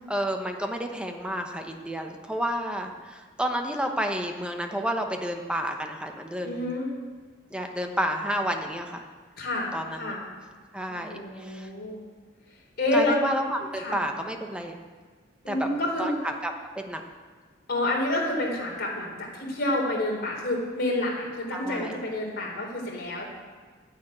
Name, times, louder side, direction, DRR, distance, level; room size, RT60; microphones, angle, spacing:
voice 1, 0.1-6.7 7.5-9.1 9.7-10.1 10.7-11.7 12.9-14.7 15.5-15.7 16.0-17.0 21.5-22.0, equal, 5° right, 4 dB, 1.1 m, -30 dB
voice 2, 6.4-6.9 9.4-10.2 10.9-12.0 12.8-13.2 13.7-14.0 15.4-16.1 17.7-23.3, left 1 dB, 55° left, -2 dB, 4.0 m, -28 dB
10.5 x 10.0 x 9.1 m, 1.5 s
head